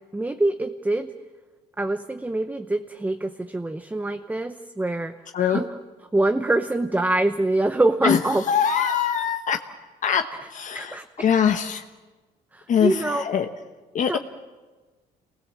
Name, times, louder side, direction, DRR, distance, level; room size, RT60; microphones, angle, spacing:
voice 1, 0.1-1.1 1.8-5.7 6.1-8.4 10.7-11.1 12.5-13.2 14.1-14.2, right 2 dB, 10° right, 8 dB, 0.9 m, -24 dB
voice 2, 8.5-9.6 10.0-10.2 10.5-11.8 12.7-13.5 13.9-14.2, left 8 dB, 50° left, 5 dB, 1.2 m, -22 dB
27.5 x 20.0 x 7.5 m, 1.3 s
cardioid pair, 110°, 17 cm